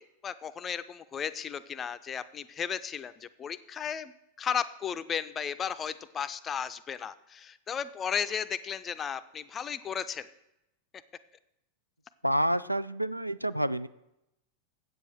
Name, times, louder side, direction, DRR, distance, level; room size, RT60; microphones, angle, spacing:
voice 1, 0.0-4.1 4.4-10.3, left 7 dB, 25° left, 14 dB, 0.5 m, -35 dB
voice 2, 12.2-13.9, right 1 dB, 90° right, 16 dB, 0.3 m, -28 dB
8.2 x 7.5 x 6.5 m, 0.87 s
figure-of-eight pair, 90°, 0 cm